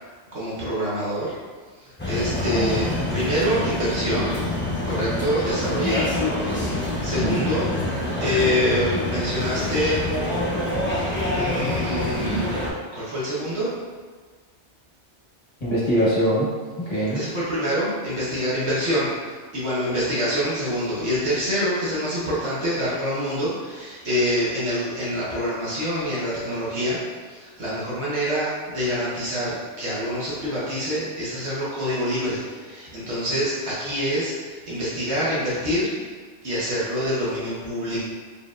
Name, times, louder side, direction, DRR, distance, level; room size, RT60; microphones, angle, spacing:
voice 1, 0.3-1.4 1.8-4.4 4.8-6.2 7.0-7.7 8.2-10.0 11.3-12.5 12.9-13.7 17.1-35.9 36.4-38.0, equal, 65° right, -8 dB, 1.3 m, -26 dB
sound 1, 2.0-12.7, left 1 dB, 10° left, 0.6 m, -26 dB
voice 2, 2.3-2.8 7.1-7.5 15.6-16.5 16.8-17.2, right 1 dB, 35° left, -9 dB, 1.1 m, -23 dB
4.3 x 3.5 x 2.4 m, 1.5 s
omnidirectional pair, 1.2 m